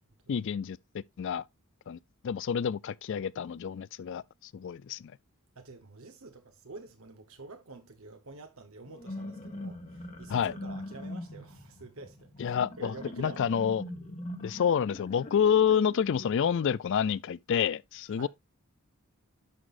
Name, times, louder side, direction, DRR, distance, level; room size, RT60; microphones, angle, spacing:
voice 1, 0.3-1.4 1.9-2.0 2.2-4.2 4.5-5.1 10.3-10.5 12.4-13.8 14.4-18.3, left 8 dB, 55° left, 0.4 m, -28 dB
voice 2, 5.5-13.5 18.1-18.3, right 3 dB, 65° right, 1.2 m, -48 dB
sound 1, 8.9-16.7, left 1 dB, 30° left, 1.7 m, -42 dB
11.0 x 6.1 x 2.5 m
head